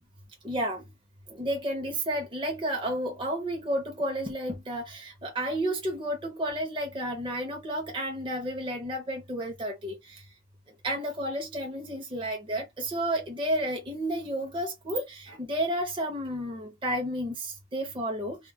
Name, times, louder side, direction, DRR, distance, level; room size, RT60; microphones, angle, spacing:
voice 1, 0.4-0.8 1.4-10.2 10.8-18.4, right 1 dB, 25° right, 0.6 m, -31 dB
2.2 x 2.1 x 3.4 m
head